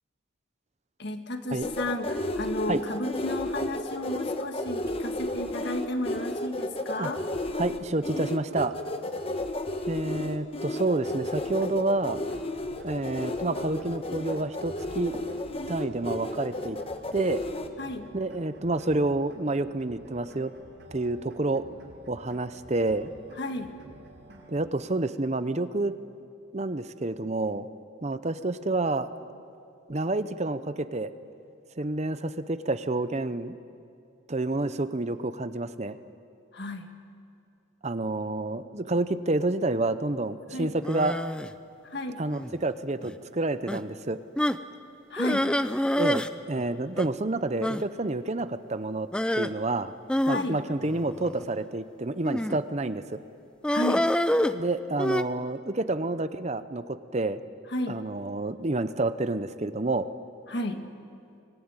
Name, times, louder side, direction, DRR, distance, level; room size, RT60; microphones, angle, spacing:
voice 1, 1.0-7.2 17.8-18.1 23.4-23.7 36.5-36.9 40.5-40.7 41.8-42.2 45.1-45.5 50.2-50.6 53.7-54.1 57.7-58.0 60.5-60.9, left 1 dB, 55° left, 6 dB, 1.8 m, -33 dB
sound 1, 1.6-17.7, left 1 dB, 30° left, 1.2 m, -33 dB
voice 2, 7.5-8.7 9.9-12.2 12.8-15.2 15.7-16.8 17.1-17.4 18.1-20.5 20.9-21.6 22.1-23.1 24.5-25.9 26.5-27.7 28.0-29.1 29.9-31.1 31.8-33.6 34.3-36.0 37.8-41.2 42.2-44.2 46.0-49.1 49.3-49.9 50.3-53.2 54.5-57.4 57.9-60.1, right 2 dB, 35° right, 12 dB, 0.7 m, -29 dB
sound 2, 12.0-24.7, right 1 dB, 60° right, 5.9 m, -50 dB
sound 3, 40.8-41.5 42.3-42.6 43.0-43.2 43.7-43.8 44.4-44.7 45.2-46.3 46.6-46.7 47.0-47.1 47.6-47.8 49.1-49.5 50.1-51.4 52.2-52.7 53.6-55.2, left 1 dB, 5° left, 0.5 m, -27 dB
25.0 x 18.5 x 9.8 m, 2.6 s
head